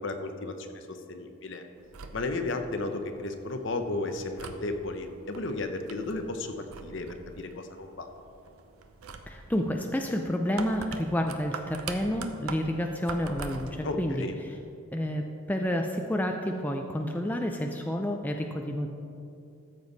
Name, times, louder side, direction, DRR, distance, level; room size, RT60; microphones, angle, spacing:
voice 1, 0.0-1.6 2.1-8.1 13.8-14.4, left 2 dB, 55° left, 6 dB, 0.7 m, -34 dB
sound 1, 1.8-13.9, right 4 dB, 85° right, 0.7 m, -44 dB
voice 2, 9.3-14.2 14.9-15.2 15.5-18.9, equal, 10° left, 3 dB, 0.4 m, -29 dB
13.5 x 7.1 x 4.0 m, 2.6 s
head